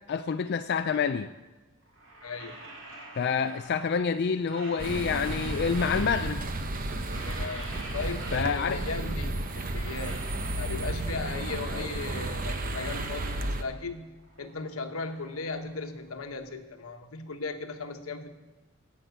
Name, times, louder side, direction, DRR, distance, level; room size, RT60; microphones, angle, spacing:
voice 1, 0.1-1.3 3.2-6.4 8.3-8.8, left 6 dB, 50° left, 9 dB, 0.4 m, -27 dB
sound 1, 1.8-4.0 4.3-6.5 6.8-9.0 9.3-11.4 11.8-13.8 14.1-16.3, right 1 dB, 65° right, 4.5 m, -47 dB
voice 2, 2.2-2.6 7.2-10.3 10.6-18.3, left 3 dB, 85° left, 7 dB, 1.1 m, -37 dB
sound 2, 4.8-13.6, right 2 dB, 40° right, 0.9 m, -33 dB
16.0 x 5.9 x 7.8 m, 1.2 s
head